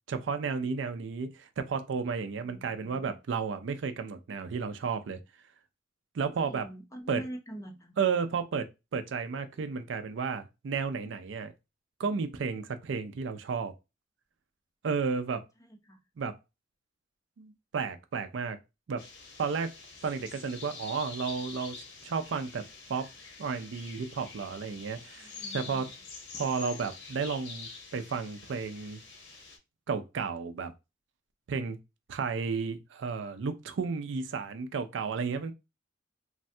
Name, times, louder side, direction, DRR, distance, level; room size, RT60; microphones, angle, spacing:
voice 1, 0.1-5.2 6.1-6.7 7.1-7.2 8.0-8.7 8.9-11.5 12.0-13.7 14.8-15.4 16.2-16.3 17.4-18.6 18.9-19.0 19.4-19.7 20.0-21.8 22.0-22.6 22.9-23.1 23.4-25.3 25.5-25.9 26.3-29.0 29.9-30.7 31.5-31.8 32.1-35.5, right 5 dB, 75° right, 0.4 m, -32 dB
voice 2, 6.4-7.9 15.6-16.0 25.2-25.8, right 1 dB, 20° left, 0.5 m, -44 dB
sound 1, 19.0-29.6, left 4 dB, 70° left, 0.8 m, -46 dB
3.2 x 2.1 x 2.6 m
head